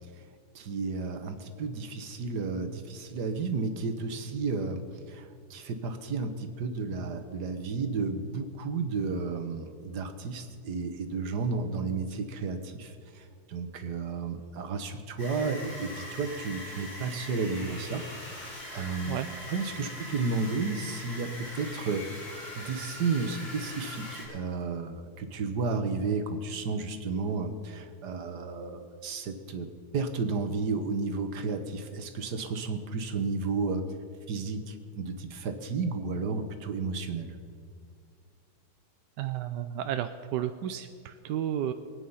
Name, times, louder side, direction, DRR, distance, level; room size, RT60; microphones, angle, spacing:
voice 1, 0.5-19.2 19.5-22.2 22.5-33.9 34.3-37.3, right 4 dB, 55° right, 7 dB, 1.6 m, -32 dB
sound 1, 15.2-24.2, left 1 dB, 80° left, 6.2 m, -42 dB
voice 2, 39.2-41.7, right 11 dB, 75° right, 9 dB, 1.1 m, -32 dB
23.5 x 9.4 x 5.6 m, 2.2 s
omnidirectional pair, 2.3 m